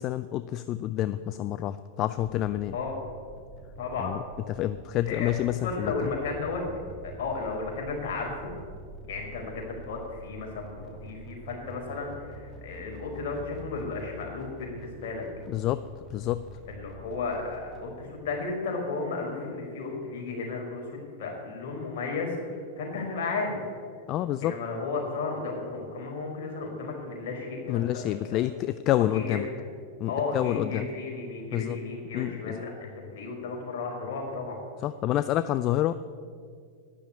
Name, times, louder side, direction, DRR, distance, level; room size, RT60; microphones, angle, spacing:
voice 1, 0.0-2.7 4.0-4.2 4.5-6.1 15.5-15.8 16.1-16.4 24.1-24.5 27.7-29.5 30.0-30.9 31.5-31.8 32.1-32.6 34.8-35.9, left 13 dB, 40° left, 13 dB, 0.5 m, -28 dB
sound 1, 2.2-17.9, right 1 dB, 5° left, 2.8 m, -47 dB
voice 2, 3.8-4.1 5.1-6.6 7.0-8.5 9.1-15.3 16.7-23.8 24.4-28.4 28.9-29.6 30.1-34.6, left 3 dB, 60° left, 0 dB, 4.5 m, -34 dB
12.0 x 10.5 x 8.6 m, 2.1 s
hypercardioid pair, 95°, 0 cm